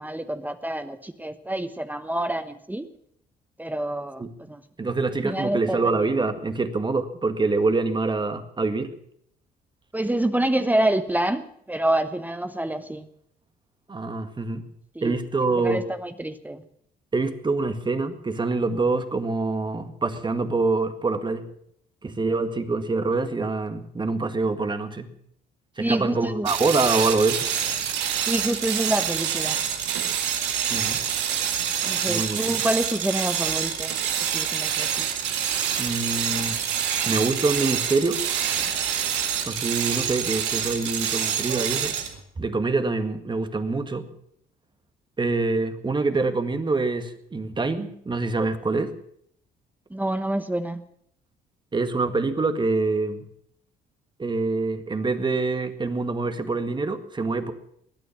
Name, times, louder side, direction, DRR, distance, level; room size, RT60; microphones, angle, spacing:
voice 1, 0.0-2.9 3.6-4.6 5.2-6.1 9.9-13.1 14.9-15.2 15.6-16.6 25.8-26.5 28.3-29.6 31.8-35.1 49.9-50.8, right 1 dB, 10° right, 10 dB, 1.1 m, -27 dB
voice 2, 4.8-8.9 13.9-14.6 15.0-15.8 17.1-21.5 22.0-25.1 25.8-27.5 30.7-31.0 32.1-32.6 35.8-36.6 37.1-38.2 39.5-42.0 42.4-44.1 45.2-48.9 51.7-53.2 54.2-57.5, right 3 dB, 25° right, 8 dB, 1.9 m, -25 dB
sound 1, 26.5-42.2, right 8 dB, 80° right, 2.0 m, -26 dB
20.5 x 9.3 x 7.3 m, 0.70 s
supercardioid pair, 65°, 18 cm